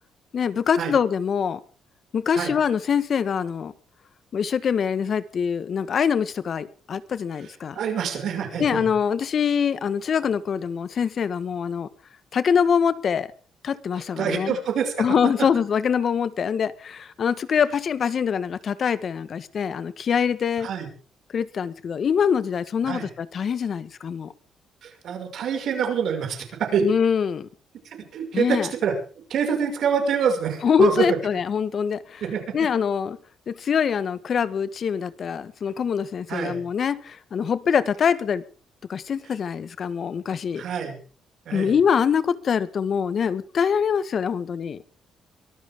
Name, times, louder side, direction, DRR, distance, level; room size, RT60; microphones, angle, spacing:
voice 1, 0.3-1.6 2.1-3.7 4.3-7.8 8.6-11.9 12.3-13.3 13.6-14.5 15.0-20.7 21.3-24.3 26.8-27.5 28.3-28.7 30.6-32.2 32.5-33.2 33.5-38.4 38.9-40.6 41.5-44.8, left 7 dB, 55° left, 1.4 m, -24 dB
voice 2, 7.7-8.9 14.2-15.0 20.6-20.9 22.8-23.1 24.8-26.9 27.8-28.9 29.3-31.2 32.2-32.4 36.3-36.6 40.6-41.0 41.5-41.7, right 7 dB, 70° right, 5.9 m, -26 dB
23.5 x 13.5 x 3.7 m
cardioid pair, 90°, 0 cm